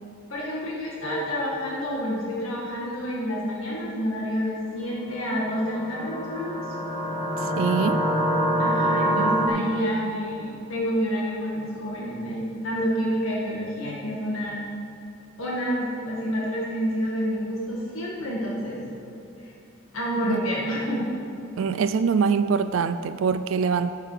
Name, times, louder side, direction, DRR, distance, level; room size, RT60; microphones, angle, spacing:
voice 1, 0.3-6.6 8.6-14.6 15.4-18.8 19.4-19.5 19.9-21.1, equal, 85° left, -4 dB, 2.0 m, -28 dB
sound 1, 5.5-9.5, right 1 dB, 35° left, 2.0 m, -25 dB
voice 2, 7.4-8.0 9.2-9.3 9.7-9.9 20.2-20.4 21.6-23.9, right 6 dB, 75° right, 11 dB, 0.4 m, -24 dB
12.5 x 8.4 x 5.8 m, 2.7 s
head